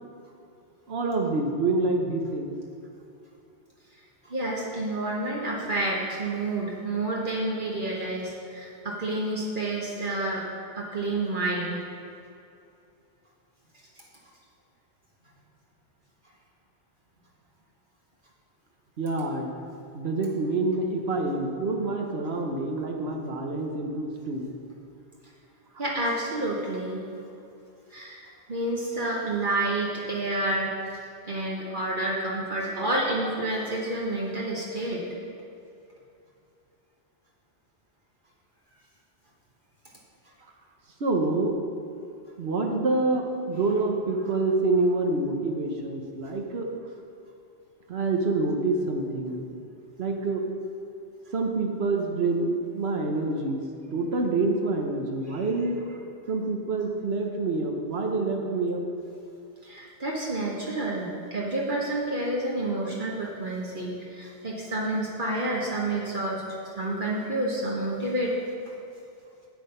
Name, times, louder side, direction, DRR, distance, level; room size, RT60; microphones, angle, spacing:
voice 1, 0.9-2.5 19.0-19.5 19.9-24.5 41.0-41.6 42.4-46.7 47.9-49.5 50.0-50.4 51.3-53.6 53.9-55.8 56.3-58.8, right 3 dB, 65° right, 2 dB, 1.2 m, -27 dB
voice 2, 4.2-10.4 10.7-11.8 25.8-27.0 27.9-28.2 28.5-30.7 31.2-35.1 55.3-55.4 59.6-66.4 66.8-68.3, right 2 dB, 50° right, -3 dB, 1.3 m, -29 dB
8.4 x 8.2 x 5.5 m, 2.6 s
omnidirectional pair, 1.1 m